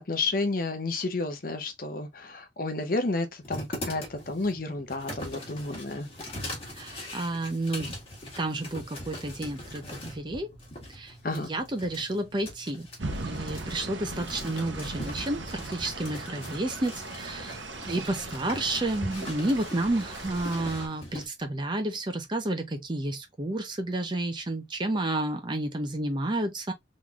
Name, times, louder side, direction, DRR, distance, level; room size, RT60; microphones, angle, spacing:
voice 1, 0.1-6.1 11.2-11.5, left 3 dB, 50° left, 0.7 m, -31 dB
sound 1, 3.4-21.3, left 1 dB, 30° left, 1.5 m, -42 dB
voice 2, 6.7-8.0 8.4-10.5 10.9-12.9 13.2-26.7, right 1 dB, 25° right, 0.6 m, -31 dB
sound 2, 13.0-20.9, right 2 dB, 85° right, 0.8 m, -38 dB
3.7 x 3.1 x 2.3 m
head